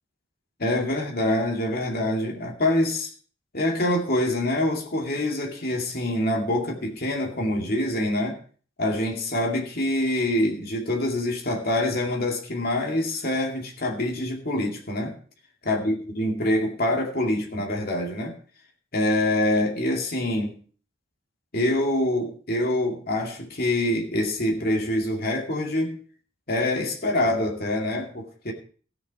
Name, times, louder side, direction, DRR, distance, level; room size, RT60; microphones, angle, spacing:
voice 1, 0.6-3.1 3.5-8.4 8.8-15.1 15.6-18.3 18.9-20.6 21.5-26.0 26.5-28.5, left 1 dB, 50° left, 0 dB, 2.3 m, -25 dB
15.5 x 7.1 x 4.8 m, 0.42 s
head